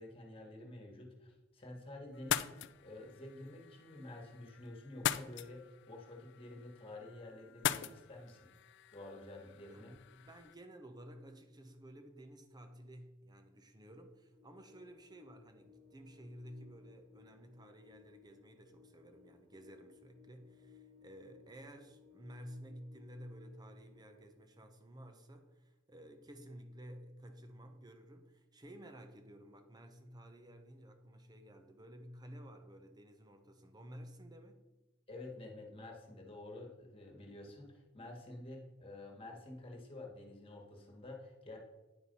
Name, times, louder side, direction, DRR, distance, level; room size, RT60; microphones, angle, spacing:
voice 1, 0.0-8.4 8.9-10.0 35.1-41.6, left 2 dB, 30° left, 0 dB, 1.8 m, -50 dB
sound 1, 2.1-10.5, left 10 dB, 60° left, 0.4 m, -42 dB
voice 2, 10.1-34.7, equal, 20° right, 6 dB, 0.9 m, -53 dB
sound 2, 14.3-24.3, left 7 dB, 65° right, 2.1 m, -63 dB
9.9 x 4.7 x 5.4 m, 1.1 s
head